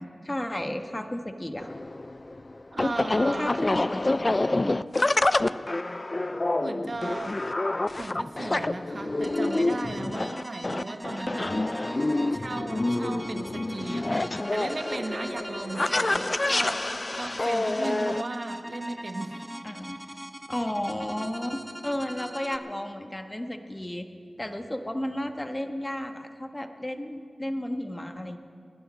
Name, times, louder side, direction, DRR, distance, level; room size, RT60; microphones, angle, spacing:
voice 1, 0.0-1.7 3.3-4.8 19.6-20.0 20.5-24.1 24.4-28.4, left 1 dB, 20° left, 6 dB, 1.3 m, -33 dB
sound 1, 1.6-18.2, left 2 dB, 35° left, 0.4 m, -27 dB
voice 2, 2.7-3.5 6.6-7.4 8.0-11.6 12.3-19.4, right 2 dB, 60° right, 6 dB, 1.3 m, -36 dB
sound 2, 9.2-22.6, right 1 dB, 10° right, 0.9 m, -41 dB
28.0 x 11.5 x 4.3 m, 2.3 s
cardioid pair, 45°, 0 cm